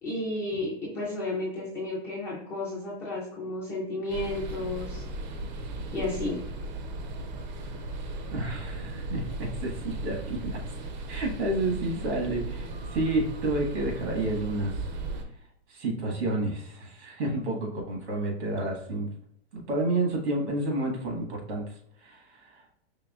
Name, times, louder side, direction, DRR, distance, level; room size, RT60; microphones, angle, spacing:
voice 1, 0.0-5.0 5.9-6.4, left 2 dB, 10° left, -8 dB, 0.3 m, -32 dB
sound 1, 4.1-15.2, right 2 dB, 45° right, 0.6 m, -36 dB
voice 2, 8.3-10.6 11.1-14.7 15.7-19.1 19.5-21.6 22.0-22.2, right 2 dB, 80° right, 1 dB, 1.5 m, -30 dB
4.7 x 3.3 x 2.3 m, 0.69 s
supercardioid pair, 160°, 33 cm